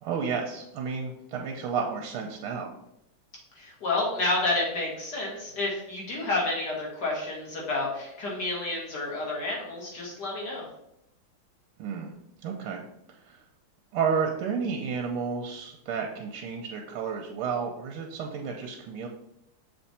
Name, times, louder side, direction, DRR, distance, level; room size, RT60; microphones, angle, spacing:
voice 1, 0.0-2.7 11.8-12.1 12.4-12.8 13.2-13.4 13.9-19.1, right 6 dB, 85° right, 1 dB, 1.6 m, -31 dB
voice 2, 3.6-10.6, left 2 dB, 50° left, -4 dB, 2.2 m, -30 dB
6.8 x 3.4 x 4.2 m, 0.81 s
omnidirectional pair, 2.4 m